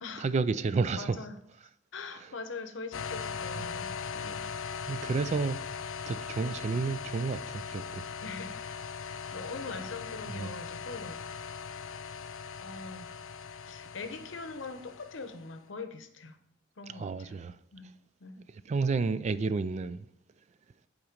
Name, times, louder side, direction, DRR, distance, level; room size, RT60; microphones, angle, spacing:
voice 1, 0.2-1.2 4.9-5.6 6.1-8.0 10.3-10.5 16.9-17.6 18.7-20.1, right 4 dB, 35° right, 0.3 m, -30 dB
voice 2, 1.0-1.4 1.9-4.5 8.2-8.7 9.3-11.2 12.6-13.1 13.6-16.4 16.8-17.4 17.7-17.9 18.2-18.4, left 3 dB, 70° left, 0.8 m, -42 dB
sound 1, 2.9-15.5, left 6 dB, 85° left, 0.4 m, -40 dB
8.7 x 4.0 x 5.0 m
head